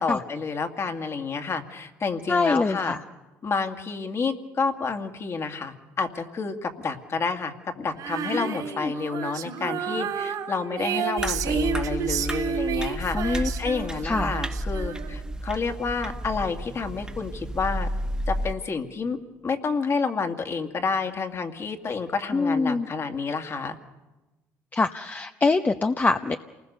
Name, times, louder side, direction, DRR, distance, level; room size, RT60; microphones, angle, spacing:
voice 1, 0.0-3.0 3.4-17.9 18.3-19.2 19.4-23.8, left 4 dB, 40° left, 6 dB, 2.3 m, -29 dB
voice 2, 2.3-3.0 8.3-8.5 8.8-8.9 13.1-13.5 14.0-14.4 22.3-22.9 24.7-26.4, left 3 dB, 25° left, 7 dB, 0.9 m, -24 dB
Female singing, 8.0-15.3, right 7 dB, 70° right, 3.2 m, -31 dB
sound 1, 11.2-18.5, right 1 dB, 10° right, 1.5 m, -32 dB
28.0 x 20.0 x 6.8 m, 1.1 s
supercardioid pair, 70°, 7 cm